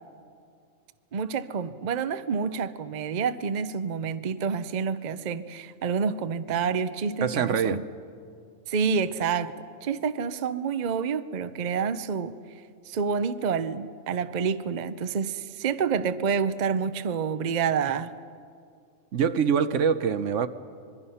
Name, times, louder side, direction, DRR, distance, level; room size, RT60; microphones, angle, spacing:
voice 1, 1.1-7.8 8.7-9.5 9.8-12.4 12.8-18.1, right 6 dB, 45° right, 12 dB, 0.7 m, -28 dB
voice 2, 7.2-7.8 19.1-20.5, right 7 dB, 70° right, 12 dB, 1.1 m, -24 dB
26.0 x 22.0 x 5.6 m, 2.3 s
omnidirectional pair, 1.4 m